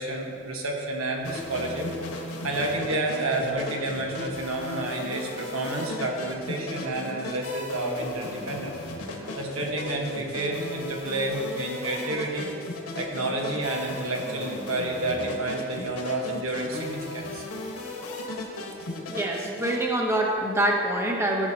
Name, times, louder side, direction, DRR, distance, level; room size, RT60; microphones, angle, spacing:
voice 1, 0.0-1.9 2.4-8.7 9.3-12.5 13.0-17.4, right 2 dB, 75° right, 0 dB, 1.3 m, -30 dB
sound 1, 1.2-19.8, left 2 dB, 90° left, 1.3 m, -36 dB
voice 2, 19.1-21.5, right 1 dB, 10° right, -1 dB, 0.7 m, -25 dB
14.5 x 7.0 x 2.8 m, 2.6 s
head